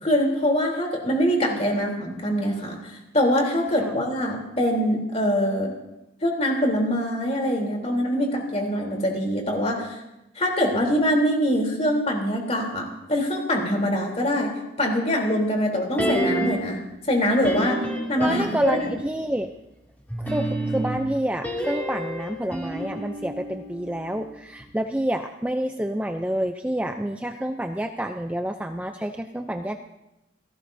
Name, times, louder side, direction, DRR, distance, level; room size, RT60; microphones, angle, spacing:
voice 1, 0.0-5.7 6.2-10.0 10.3-14.5 14.8-16.8 17.1-17.8 18.1-18.9, equal, 35° left, 0 dB, 3.4 m, -24 dB
sound 1, 16.0-16.8 17.4-19.1 20.1-24.3 24.6-24.7, right 1 dB, 10° left, 2.5 m, -29 dB
voice 2, 18.2-19.5 20.2-29.8, right 1 dB, 5° right, 5 dB, 0.5 m, -28 dB
27.5 x 18.0 x 2.7 m, 0.91 s
head